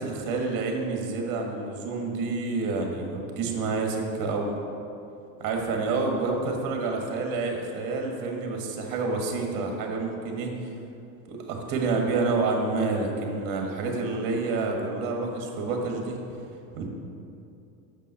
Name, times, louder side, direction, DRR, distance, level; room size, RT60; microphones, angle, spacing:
voice 1, 0.0-4.5 5.4-10.5 11.3-16.2 16.7-16.9, right 3 dB, 55° right, 2 dB, 1.5 m, -28 dB
6.8 x 5.2 x 5.6 m, 2.7 s
supercardioid pair, 120°, 41 cm